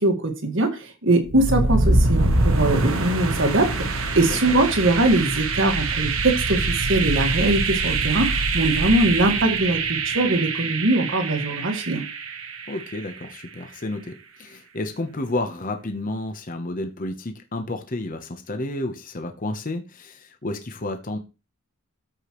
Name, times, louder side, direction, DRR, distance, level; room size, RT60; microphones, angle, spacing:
voice 1, 0.0-3.7 3.9-12.0, right 2 dB, 60° right, 1.7 m, -22 dB
sound 1, 1.2-13.1, right 3 dB, 80° right, 1.3 m, -24 dB
voice 2, 12.7-21.2, left 2 dB, 40° left, 0.9 m, -31 dB
13.5 x 5.0 x 3.1 m
head